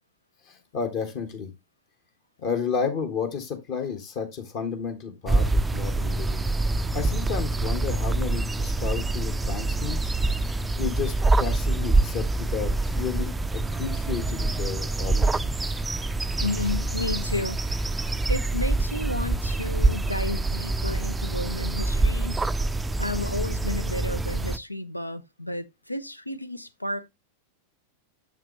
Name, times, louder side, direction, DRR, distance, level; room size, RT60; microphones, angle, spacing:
voice 1, 0.5-1.5 2.4-6.4 6.8-10.1 10.4-11.1 11.4-13.3 13.7-15.8, left 6 dB, 45° left, 1.5 m, -32 dB
sound 1, 5.3-24.6, right 2 dB, 10° right, 0.4 m, -26 dB
voice 2, 16.4-17.9 18.3-22.4 23.0-27.1, left 2 dB, 85° left, 0.5 m, -32 dB
6.8 x 5.8 x 3.1 m
figure-of-eight pair, 90°, 0 cm